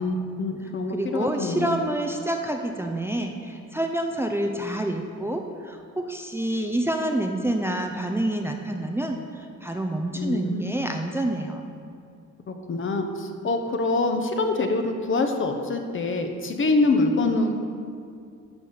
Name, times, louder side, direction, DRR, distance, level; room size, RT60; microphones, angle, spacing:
voice 1, 0.0-1.8 10.1-10.7 12.5-17.5, left 3 dB, 40° left, 5 dB, 1.1 m, -25 dB
voice 2, 0.9-11.6, right 1 dB, 10° right, 3 dB, 0.6 m, -28 dB
12.0 x 4.1 x 6.5 m, 2.4 s
cardioid pair, 90°, 30 cm